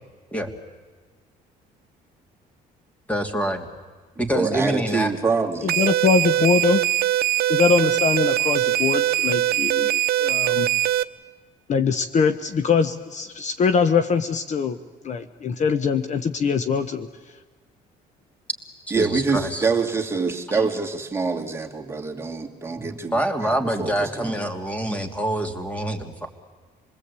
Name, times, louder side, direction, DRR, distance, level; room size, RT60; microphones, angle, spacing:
voice 1, 3.1-3.7 4.2-5.1 18.9-19.6 22.7-26.3, right 1 dB, 10° left, 5 dB, 2.9 m, -26 dB
voice 2, 4.3-5.9 18.9-24.4, right 4 dB, 15° right, 2 dB, 2.5 m, -26 dB
voice 3, 5.6-6.8 7.5-10.7 11.7-14.8 15.0-17.1, left 5 dB, 45° left, 10 dB, 1.1 m, -22 dB
sound 1, 5.7-11.0, right 13 dB, 65° right, 0.8 m, -22 dB
27.0 x 20.5 x 8.4 m, 1.4 s
cardioid pair, 110°, 17 cm